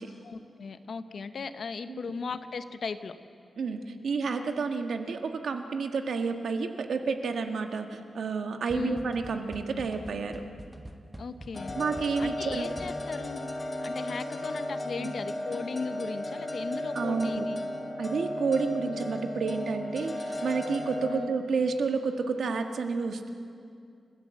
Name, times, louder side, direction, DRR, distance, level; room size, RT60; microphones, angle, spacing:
voice 1, 0.2-3.2 8.7-9.0 11.2-11.8 12.2-13.4 13.8-17.6 21.1-21.3, left 4 dB, 55° left, 11 dB, 0.9 m, -37 dB
voice 2, 3.6-10.4 11.7-12.7 15.0-15.2 17.0-17.5 18.0-23.3, right 4 dB, 70° right, 6 dB, 1.6 m, -30 dB
sound 1, 8.7-13.3, right 1 dB, 10° right, 1.1 m, -46 dB
sound 2, 11.6-21.2, left 1 dB, 20° left, 2.1 m, -35 dB
30.0 x 15.5 x 7.7 m, 2.4 s
wide cardioid pair, 165°, 0 cm